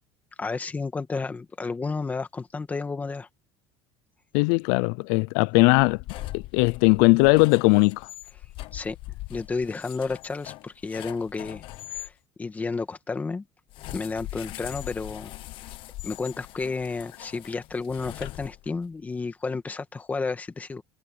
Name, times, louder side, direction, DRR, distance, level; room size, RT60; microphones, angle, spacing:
voice 1, 0.4-3.3 8.7-9.0 9.3-11.6 11.9-12.1 12.4-13.4 13.9-15.3 15.6-15.7 16.0-20.8, left 4 dB, 15° left, 1.7 m, -31 dB
voice 2, 4.3-6.0 6.3-8.0, left 28 dB, 80° left, 0.5 m, -19 dB
sound 1, 5.7-12.1 13.7-18.9, left 16 dB, 50° left, 1.2 m, -41 dB
cardioid pair, 160°, 11 cm